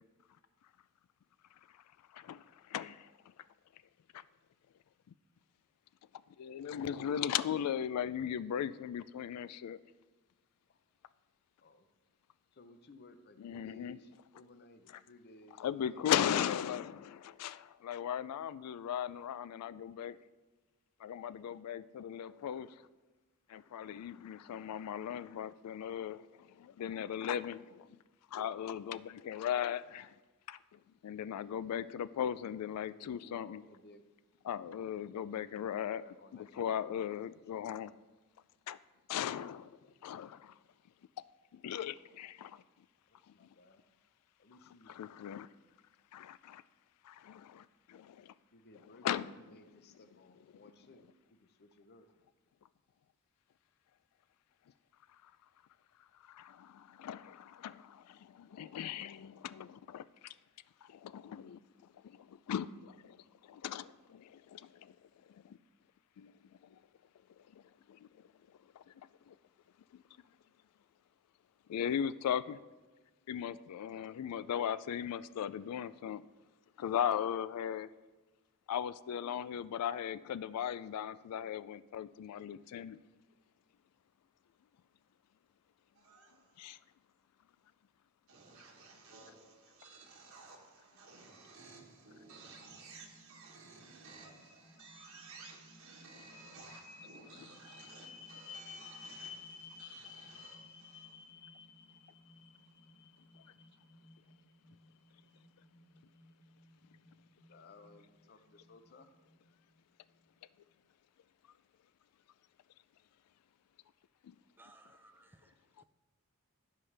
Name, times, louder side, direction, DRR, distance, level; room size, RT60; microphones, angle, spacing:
voice 1, 6.4-9.8 13.4-14.0 15.6-20.2 21.0-22.7 23.5-26.2 26.8-27.6 28.3-30.1 30.5-30.6 31.0-33.6 34.4-36.0 36.5-37.9 38.7-38.8 39.1-39.7 40.0-40.4 41.6-42.5 44.9-45.5 46.1-46.6 47.2-47.6 49.0-49.3 56.4-56.7 57.0-57.8 58.4-60.0 61.0-61.6 62.5-62.7 63.5-63.9 64.1-64.2 64.5-64.6 71.7-72.6 73.3-76.2 76.8-77.9 78.7-83.0 86.6-86.8, left 9 dB, 90° left, 17 dB, 0.3 m, -37 dB
voice 2, 12.5-16.2 32.8-34.1 35.1-37.7 43.1-43.8 44.4-45.1 48.5-52.1 80.2-81.6 92.6-93.1 107.5-109.1, left 2 dB, 45° left, 9 dB, 0.7 m, -59 dB
sound 1, 86.0-86.7 88.3-101.2, right 4 dB, 65° right, 1.3 m, -56 dB
sound 2, 91.6-109.7, left 5 dB, 30° left, 1.5 m, -55 dB
voice 3, 114.6-115.8, right 2 dB, 10° right, 9 dB, 0.4 m, -62 dB
15.5 x 5.6 x 3.3 m, 1.2 s
head